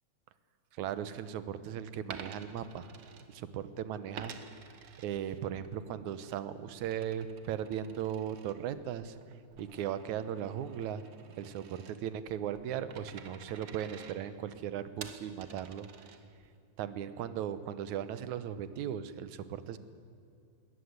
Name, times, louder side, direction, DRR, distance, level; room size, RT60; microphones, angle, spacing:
voice 1, 0.7-2.9 3.3-4.5 5.0-9.2 9.6-11.0 11.4-15.9 16.8-19.8, right 9 dB, 80° right, 13 dB, 2.4 m, -37 dB
Coin (dropping), 2.1-3.7 4.1-5.7 6.1-16.6, right 6 dB, 50° right, 1.6 m, -51 dB
21.0 x 18.5 x 9.6 m, 2.4 s
omnidirectional pair, 3.4 m